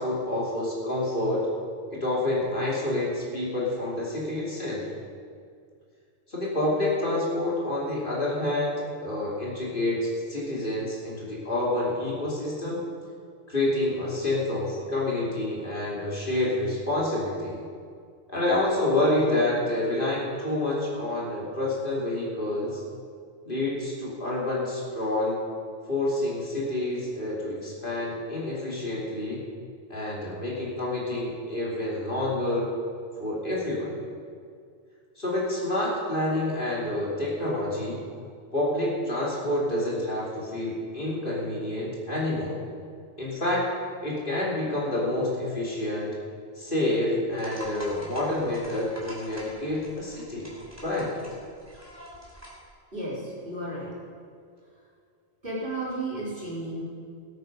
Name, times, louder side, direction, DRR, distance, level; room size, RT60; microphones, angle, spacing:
voice 1, 0.0-1.4 1.9-4.9 6.3-12.8 13.5-17.6 18.3-22.8 23.4-25.4 25.9-29.4 29.9-32.7 33.2-33.9 35.2-38.0 38.5-42.6 43.2-43.6 44.0-46.2 46.5-50.5 50.8-51.1, left 1 dB, 45° left, -5 dB, 3.1 m, -28 dB
sound 1, 47.3-52.7, equal, 10° right, 3.5 m, -45 dB
voice 2, 52.9-54.0 54.7-54.9 55.4-56.8, right 2 dB, 45° right, -7 dB, 3.9 m, -33 dB
19.5 x 8.4 x 5.4 m, 2.2 s
omnidirectional pair, 1.2 m